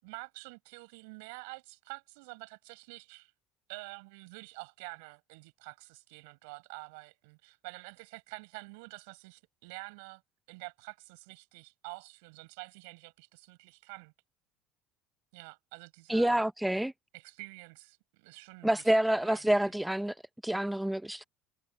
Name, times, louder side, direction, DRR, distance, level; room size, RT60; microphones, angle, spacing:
voice 1, 0.0-3.3 3.7-10.2 10.5-14.1 15.3-16.4 17.1-19.7, right 30 dB, 90° right, 6.8 m, -48 dB
voice 2, 16.1-16.9 18.6-20.1 20.4-21.2, right 1 dB, 5° right, 0.9 m, -27 dB
cardioid pair, 145°, 0 cm